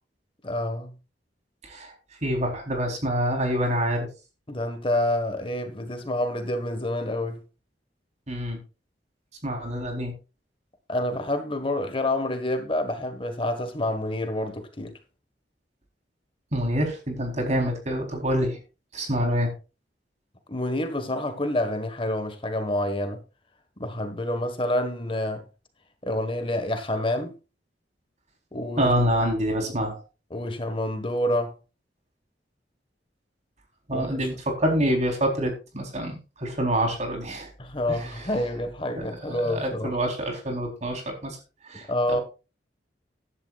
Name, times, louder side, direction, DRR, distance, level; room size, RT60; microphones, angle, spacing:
voice 1, 0.4-0.9 4.5-7.4 10.9-14.9 20.5-23.2 23.8-25.4 26.0-27.3 28.5-28.9 30.3-31.5 33.9-34.2 37.6-40.0 41.7-42.2, left 1 dB, 30° left, 1.5 m, -28 dB
voice 2, 2.2-4.1 8.3-8.6 9.4-10.1 16.5-18.6 18.9-19.5 28.8-30.0 33.9-37.5 37.9-38.3 39.3-41.4 41.6-42.2, equal, 40° right, 3.9 m, -26 dB
15.0 x 11.0 x 2.4 m
head